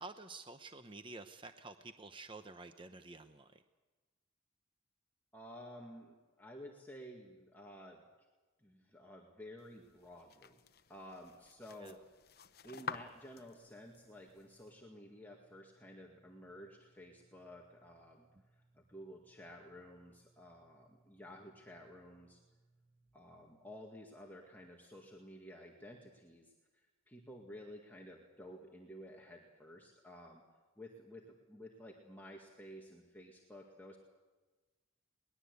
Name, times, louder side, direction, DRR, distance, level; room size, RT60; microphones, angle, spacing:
voice 1, 0.0-3.6 11.8-11.9, right 3 dB, 25° right, 8 dB, 0.8 m, -50 dB
voice 2, 5.3-8.0 8.6-10.6 10.9-12.0 12.6-18.3 18.7-22.4 23.1-30.4 30.8-34.0, equal, 10° left, -1 dB, 2.0 m, -53 dB
sound 1, 9.6-14.7, left 5 dB, 50° left, 0.9 m, -50 dB
sound 2, 13.5-23.8, right 2 dB, 30° left, 2.8 m, -73 dB
21.5 x 20.0 x 8.2 m, 1.3 s
head